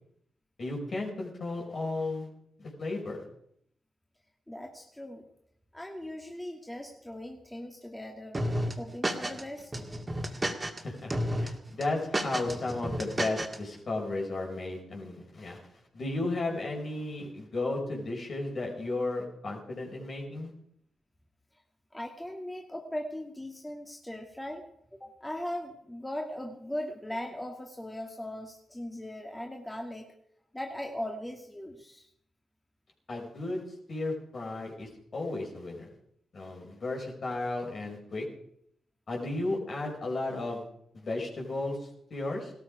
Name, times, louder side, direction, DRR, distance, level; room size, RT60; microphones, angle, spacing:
voice 1, 0.6-2.3 2.6-3.2 10.8-15.6 15.9-20.5 33.1-35.9 36.3-38.2 39.1-40.6 40.9-42.5, left 2 dB, 55° left, 0 dB, 4.9 m, -34 dB
voice 2, 4.5-5.3 5.7-8.4 8.8-9.7 21.9-24.6 24.9-30.1 30.5-32.1, left 1 dB, 10° left, 2 dB, 2.1 m, -39 dB
sound 1, 8.3-9.4 9.7-10.8 11.1-11.5 11.8-13.6, right 1 dB, 25° right, 2.2 m, -31 dB
17.0 x 13.0 x 5.0 m, 0.72 s
supercardioid pair, 45°, 0 cm